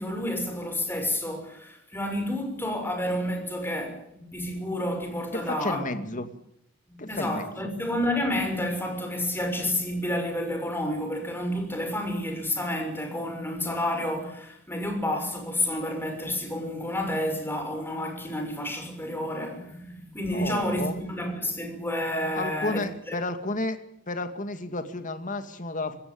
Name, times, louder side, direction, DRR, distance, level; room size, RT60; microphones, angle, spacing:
voice 1, 0.0-5.8 6.9-23.1, left 1 dB, 10° left, 6.3 m, -30 dB
voice 2, 5.3-6.3 7.0-7.7 20.3-21.0 22.3-23.8 24.1-26.0, left 2 dB, 40° left, 2.4 m, -32 dB
26.0 x 15.5 x 8.8 m
head